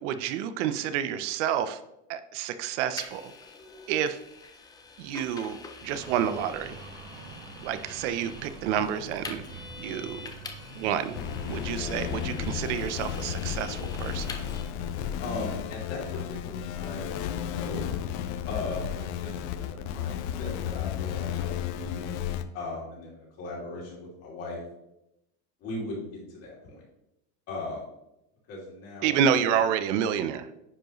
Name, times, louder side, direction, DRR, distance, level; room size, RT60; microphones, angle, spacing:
voice 1, 0.0-1.8 2.1-3.2 3.9-4.2 5.0-6.8 7.6-10.3 10.7-11.2 11.5-14.3 29.0-30.5, right 9 dB, 75° right, 12 dB, 0.6 m, -29 dB
Vehicle, 3.0-14.6, left 4 dB, 10° left, 0.4 m, -45 dB
sound 1, 5.9-11.7, right 3 dB, 55° right, 1.6 m, -45 dB
sound 2, 11.1-22.4, left 9 dB, 70° left, 0.6 m, -33 dB
voice 2, 15.2-17.9 18.5-24.6 25.6-26.8 27.5-27.8 28.5-29.2, left 2 dB, 40° left, -5 dB, 2.9 m, -38 dB
9.8 x 4.7 x 3.0 m, 0.87 s
cardioid pair, 165°, 36 cm